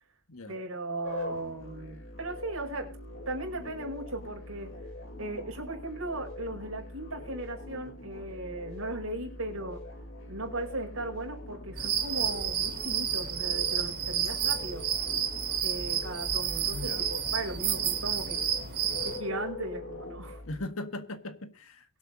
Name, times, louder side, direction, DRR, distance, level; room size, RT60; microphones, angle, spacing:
voice 1, 0.5-2.9 3.3-4.7 5.2-9.8 10.3-14.8 15.6-18.4 19.0-20.4, right 2 dB, 75° right, 1 dB, 5.3 m, -37 dB
sound 1, 1.0-20.7, left 2 dB, 60° left, 2.1 m, -43 dB
sound 2, 11.8-19.2, right 9 dB, 45° right, 3.2 m, -30 dB
voice 2, 16.7-17.1 20.5-22.0, left 2 dB, 80° left, 8 dB, 1.7 m, -39 dB
23.0 x 8.2 x 2.8 m, 0.35 s
head